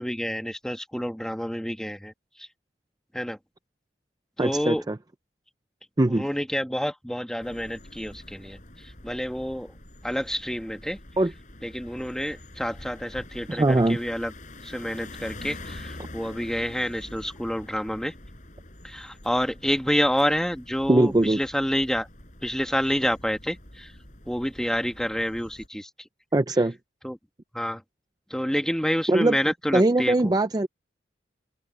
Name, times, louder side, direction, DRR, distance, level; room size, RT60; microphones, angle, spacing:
voice 1, 0.0-2.1 2.4-2.5 3.1-3.4 4.4-4.8 6.0-9.7 10.0-11.0 11.6-14.3 14.6-18.1 18.8-22.1 22.4-23.9 24.3-25.9 27.0-27.2 27.5-27.8 28.3-30.3, equal, 5° left, 1.5 m, -28 dB
voice 2, 4.4-5.0 6.0-6.2 11.2-11.3 13.5-14.0 20.9-21.4 26.3-26.8 29.1-29.4 29.7-30.7, right 2 dB, 20° right, 0.5 m, -21 dB
sound 1, 7.4-25.7, left 1 dB, 45° left, 5.9 m, -46 dB
head